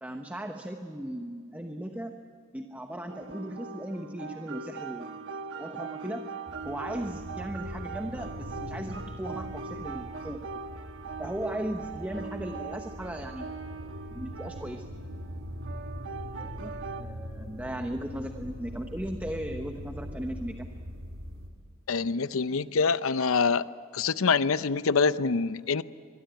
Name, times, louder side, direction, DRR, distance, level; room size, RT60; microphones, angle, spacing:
voice 1, 0.0-2.2 2.5-5.3 5.6-6.3 6.6-10.6 11.2-13.5 14.1-14.9 16.4-20.7, right 1 dB, 10° right, 5 dB, 1.0 m, -37 dB
sound 1, 3.1-17.0, right 4 dB, 60° right, 1.3 m, -41 dB
sound 2, 6.5-21.5, equal, 80° right, 3.6 m, -42 dB
voice 2, 21.9-23.7 23.9-25.8, left 5 dB, 75° left, 15 dB, 0.7 m, -25 dB
23.5 x 23.0 x 9.2 m, 2.1 s
head